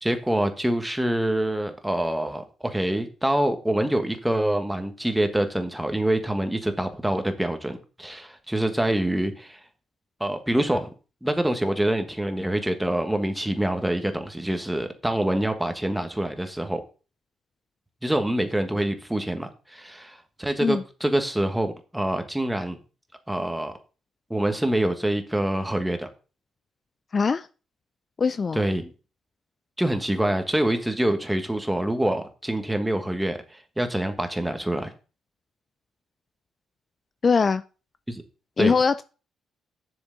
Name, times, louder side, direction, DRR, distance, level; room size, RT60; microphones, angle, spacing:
voice 1, 0.0-9.6 10.2-10.9 11.2-16.8 18.0-22.8 23.3-23.7 24.3-26.1 28.5-28.9 29.8-33.4 33.8-34.9 38.1-38.2 38.6-38.7, right 1 dB, 5° right, 1.3 m, -25 dB
voice 2, 27.1-27.5 28.2-28.6 37.2-37.6 38.6-39.0, left 5 dB, 35° left, 0.3 m, -21 dB
7.1 x 7.1 x 3.9 m
cardioid pair, 90°, 0 cm